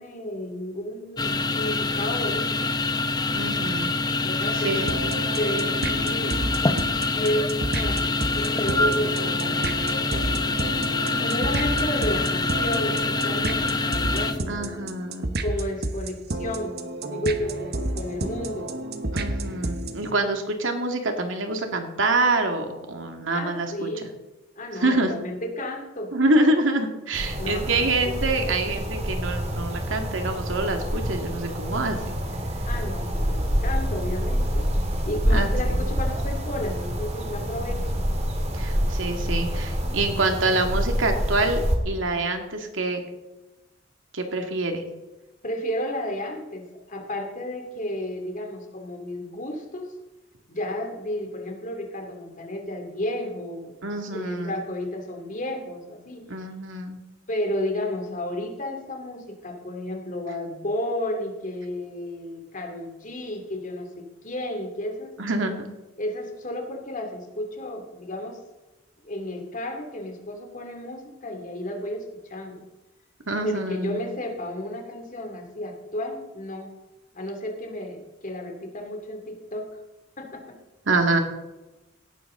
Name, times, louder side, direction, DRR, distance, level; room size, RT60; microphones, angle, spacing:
voice 1, 0.0-2.7 4.2-4.9 5.4-6.4 7.1-9.7 11.2-15.0 15.4-16.8 17.1-18.7 23.3-24.1 24.6-26.1 27.4-28.2 32.7-34.7 35.0-37.8 45.4-49.9 50.5-53.7 54.1-56.2 57.3-65.1 66.0-68.4 69.0-72.6 73.4-76.7 77.1-79.7 80.2-80.6, left 1 dB, 45° left, 3 dB, 2.7 m, -32 dB
sound 1, 1.2-14.4, left 3 dB, 20° left, 0.7 m, -25 dB
voice 2, 3.3-3.9 4.6-5.0 14.5-15.4 19.1-23.9 24.7-25.1 26.1-32.2 35.3-35.8 38.5-43.1 44.1-44.8 53.8-54.5 56.3-57.0 65.2-65.6 73.3-74.0 80.9-81.2, right 2 dB, 85° right, 4 dB, 2.2 m, -26 dB
sound 2, 4.9-20.1, right 2 dB, 55° right, 1.1 m, -31 dB
sound 3, 27.1-41.8, equal, 35° right, 2.1 m, -27 dB
17.5 x 11.5 x 3.8 m, 1.1 s
head